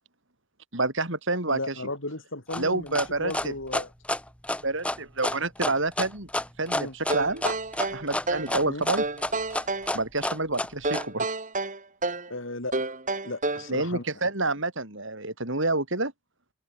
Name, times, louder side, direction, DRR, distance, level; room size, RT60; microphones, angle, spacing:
voice 1, 0.7-1.7 2.6-3.5 4.6-6.3 6.6-7.4 7.9-9.0 9.9-11.3 13.7-16.1, right 2 dB, 55° right, 5.0 m, -28 dB
voice 2, 1.5-3.9 6.7-6.9 8.6-8.8 12.3-12.7 13.2-14.0, left 2 dB, 60° left, 3.8 m, -35 dB
sound 1, 2.5-11.1, left 1 dB, 5° left, 1.7 m, -29 dB
sound 2, 7.1-8.6 9.0-9.9 10.8-12.3 12.7-13.7, right 2 dB, 35° right, 6.2 m, -29 dB
open air
head